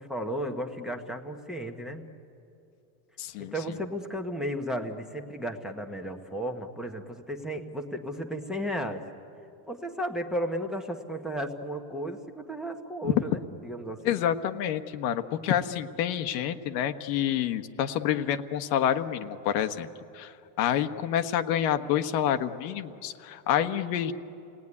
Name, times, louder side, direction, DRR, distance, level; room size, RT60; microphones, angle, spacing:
voice 1, 0.0-2.1 3.4-9.0 9.7-14.2, equal, ahead, 2 dB, 1.2 m, -34 dB
voice 2, 3.2-3.8 13.0-13.2 14.0-19.9 20.1-24.1, left 10 dB, 75° left, 8 dB, 1.4 m, -28 dB
29.5 x 19.0 x 9.8 m, 2.7 s
supercardioid pair, 150°, 50 cm